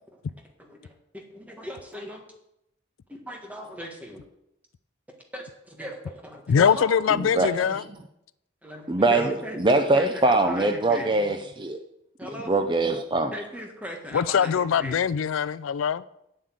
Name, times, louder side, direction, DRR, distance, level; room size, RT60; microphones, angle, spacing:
voice 1, 0.6-2.2 3.1-4.2 5.3-7.0 7.4-7.8 8.6-11.1 12.2-12.5 13.3-15.0, equal, 10° right, 1.7 m, -38 dB
voice 2, 6.5-7.8 14.1-16.0, left 7 dB, 80° left, 0.4 m, -22 dB
voice 3, 8.9-9.3 9.6-11.8 12.2-13.3, right 2 dB, 25° right, 0.5 m, -22 dB
8.5 x 7.6 x 7.8 m
head